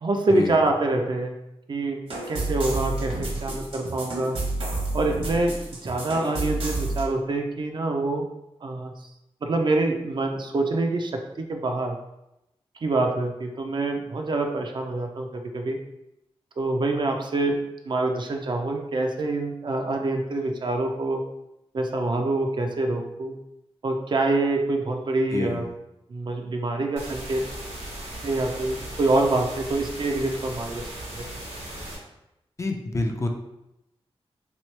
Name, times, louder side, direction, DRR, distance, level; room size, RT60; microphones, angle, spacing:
voice 1, 0.0-1.3 1.7-2.0 2.3-4.4 4.9-5.6 5.8-8.2 8.6-8.9 9.4-11.1 11.4-12.0 12.8-15.8 16.6-17.6 17.9-21.2 21.7-23.4 23.8-25.7 26.1-27.4 28.2-30.9, right 2 dB, 50° right, 3 dB, 0.4 m, -25 dB
sound 1, 2.1-7.1, right 2 dB, 65° right, 1.0 m, -30 dB
voice 2, 25.3-25.6 32.6-33.3, left 2 dB, 30° left, 3 dB, 0.4 m, -27 dB
sound 2, 27.0-32.0, right 1 dB, 80° right, 1.3 m, -37 dB
3.5 x 3.0 x 3.2 m, 0.88 s
wide cardioid pair, 165°, 10 cm